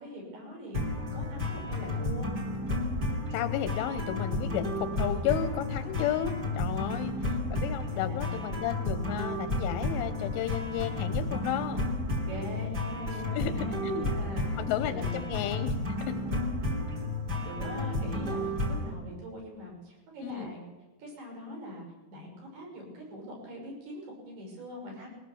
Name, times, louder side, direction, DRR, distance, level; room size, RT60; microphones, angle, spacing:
voice 1, 0.0-2.3 7.9-8.5 12.2-14.5 14.8-15.2 16.0-16.4 17.4-20.6 21.0-21.8 22.1-25.1, equal, 60° right, -1 dB, 7.7 m, -42 dB
sound 1, 0.7-18.9, left 1 dB, 25° right, 3.0 m, -32 dB
voice 2, 3.3-11.8 13.1-14.1 14.6-15.7 20.2-20.5, left 11 dB, 90° left, 8 dB, 3.5 m, -33 dB
21.0 x 19.0 x 7.1 m, 1.1 s
omnidirectional pair, 5.4 m